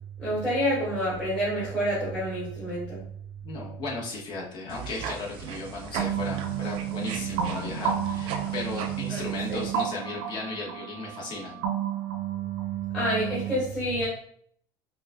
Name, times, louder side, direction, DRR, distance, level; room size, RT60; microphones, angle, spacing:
voice 1, 0.2-3.0 9.1-9.2 9.5-9.6 12.9-14.1, equal, 10° left, -11 dB, 1.4 m, -28 dB
voice 2, 3.4-11.6, left 3 dB, 45° left, -3 dB, 1.2 m, -36 dB
sound 1, 4.7-9.9, right 6 dB, 55° right, 0.5 m, -37 dB
sound 2, 6.0-13.5, right 9 dB, 85° right, 0.7 m, -31 dB
5.3 x 2.5 x 2.2 m, 0.62 s
cardioid pair, 140°, 11 cm